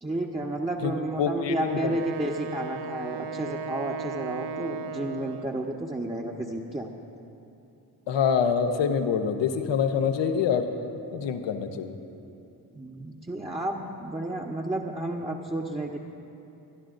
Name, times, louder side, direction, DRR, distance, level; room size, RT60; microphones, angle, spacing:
voice 1, 0.0-6.9 12.7-16.0, right 1 dB, 15° right, -2 dB, 1.1 m, -31 dB
voice 2, 1.2-1.9 8.1-10.7 11.1-11.9, left 7 dB, 80° left, 7 dB, 0.9 m, -25 dB
Wind instrument woodwind instrument, 1.6-5.7, right 4 dB, 70° right, 0.6 m, -36 dB
25.5 x 10.5 x 2.6 m, 2.7 s
supercardioid pair, 45°, 43 cm